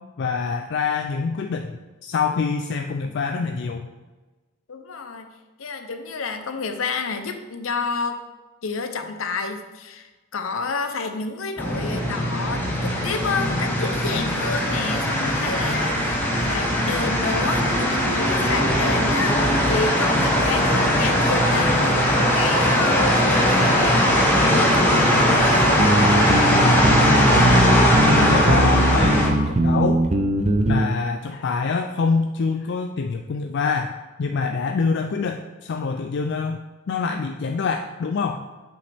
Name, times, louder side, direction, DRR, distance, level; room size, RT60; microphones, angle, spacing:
voice 1, 0.2-3.9 27.3-27.8 28.1-30.0 30.7-36.6 36.9-38.4, left 5 dB, 60° left, 5 dB, 0.4 m, -25 dB
voice 2, 4.7-5.3 5.6-8.2 8.6-24.0 24.4-25.7, left 4 dB, 90° left, 7 dB, 0.7 m, -30 dB
sound 1, 11.6-29.3, equal, 10° left, 1.0 m, -20 dB
sound 2, 25.8-30.9, right 1 dB, 35° right, 0.5 m, -20 dB
7.8 x 5.3 x 3.4 m, 1.2 s
head